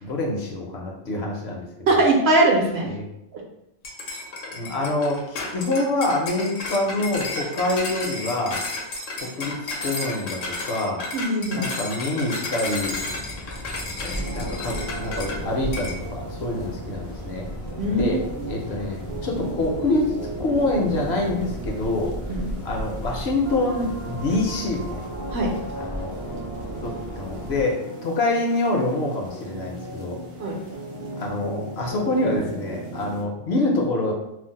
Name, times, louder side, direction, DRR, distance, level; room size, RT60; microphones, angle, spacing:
voice 1, 0.0-2.0 2.9-3.1 4.5-8.6 9.2-9.6 9.8-11.0 11.5-13.0 14.0-17.5 18.0-18.2 18.5-22.1 22.6-25.0 25.8-26.1 26.8-30.2 31.2-34.1, left 2 dB, 65° left, -1 dB, 0.8 m, -26 dB
voice 2, 1.9-2.9 11.1-11.7 17.8-18.5 22.3-22.5 25.3-25.5 30.4-30.6, right 2 dB, 65° right, 0 dB, 0.8 m, -21 dB
sound 1, 3.8-15.4 15.7-16.0, left 2 dB, 85° left, 1.0 m, -32 dB
sound 2, 12.8-27.7, equal, 25° left, 0.4 m, -35 dB
sound 3, 14.2-33.2, right 2 dB, 40° right, 0.4 m, -37 dB
2.5 x 2.0 x 3.9 m, 0.83 s
omnidirectional pair, 1.3 m